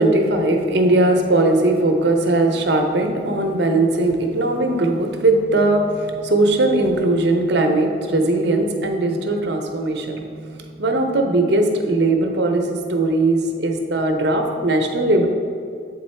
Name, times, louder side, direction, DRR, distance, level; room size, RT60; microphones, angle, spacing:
voice 1, 0.0-15.3, right 2 dB, 60° right, 4 dB, 0.6 m, -19 dB
8.0 x 3.8 x 4.3 m, 2.4 s
head